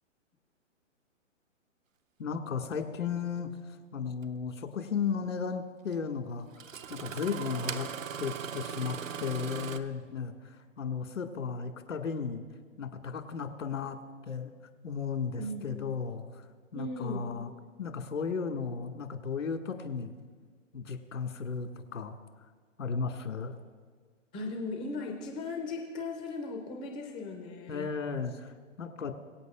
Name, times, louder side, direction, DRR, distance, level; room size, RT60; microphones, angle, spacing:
voice 1, 2.2-6.5 6.9-7.9 8.2-12.4 12.8-14.0 14.3-14.5 14.8-16.5 16.7-17.5 17.8-20.1 20.7-22.2 22.8-23.6 27.7-29.1, left 6 dB, 85° left, 4 dB, 1.7 m, -35 dB
Engine starting, 4.2-4.3 5.9-6.0 6.5-9.8, right 8 dB, 85° right, 0.9 m, -39 dB
voice 2, 15.4-15.8 16.7-17.2 24.3-27.9, left 2 dB, 10° left, 2 dB, 0.4 m, -37 dB
23.5 x 8.3 x 2.3 m, 1.5 s
hypercardioid pair, 140°, 38 cm